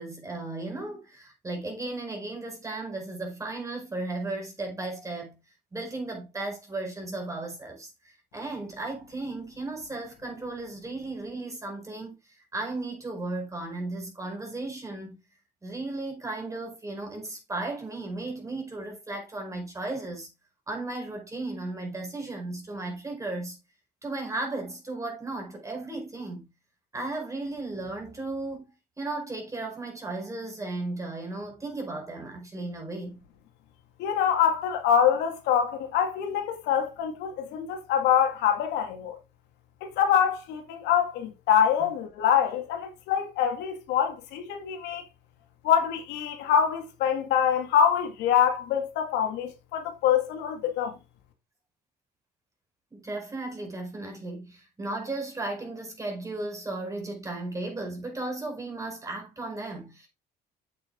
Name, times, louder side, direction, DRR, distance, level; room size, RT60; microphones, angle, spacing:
voice 1, 0.0-5.4 5.7-12.2 12.5-15.2 15.6-20.3 20.7-23.6 24.0-26.5 26.9-33.2 41.8-41.9 52.9-60.1, right 2 dB, 20° right, 4.9 m, -35 dB
voice 2, 34.0-39.2 39.8-45.0 45.6-51.0, left 8 dB, 90° left, 2.3 m, -25 dB
8.1 x 7.2 x 3.9 m
cardioid pair, 110°, 17 cm